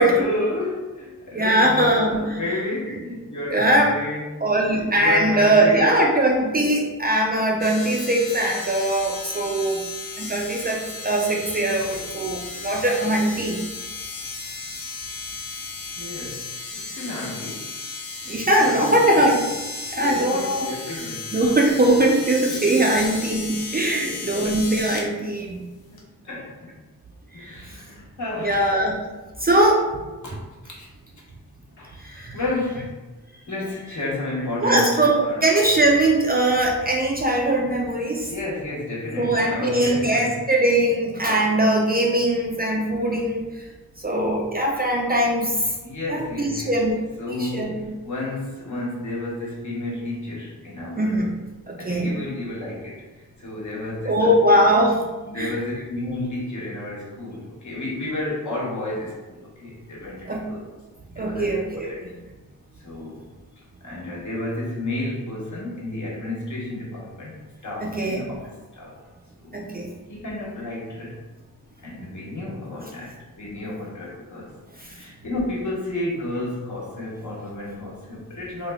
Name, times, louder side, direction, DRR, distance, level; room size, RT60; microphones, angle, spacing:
voice 1, 0.0-4.3 4.6-5.9 16.0-17.6 18.5-19.3 19.9-21.4 22.5-22.9 23.9-24.4 25.9-26.7 27.3-28.7 30.2-30.3 30.6-30.9 31.8-32.0 32.3-33.0 33.5-35.4 38.3-40.4 45.8-46.8 47.2-51.2 51.8-54.6 55.3-60.6 61.1-61.5 61.8-62.0 62.8-63.3 63.8-67.4 67.6-68.9 69.4-69.6 70.1-71.3 71.8-78.7, left 2 dB, 55° left, -5 dB, 1.1 m, -31 dB
voice 2, 1.3-2.4 3.5-3.9 4.4-9.8 10.2-13.6 18.3-19.5 19.9-20.7 21.3-25.6 27.4-27.6 28.4-28.9 29.4-29.8 31.9-32.4 34.6-38.3 39.2-43.6 44.0-45.7 46.1-47.0 47.3-47.9 51.0-51.3 51.7-52.1 54.0-55.0 55.3-55.5 60.3-60.6 61.2-61.9 67.8-68.2 69.5-69.9 74.8-74.9, right 1 dB, 25° right, -1 dB, 0.4 m, -21 dB
sound 1, 7.6-25.1 26.0-26.1, left 3 dB, 85° left, 0.7 m, -35 dB
3.4 x 2.1 x 3.4 m, 1.2 s
wide cardioid pair, 95°, 35 cm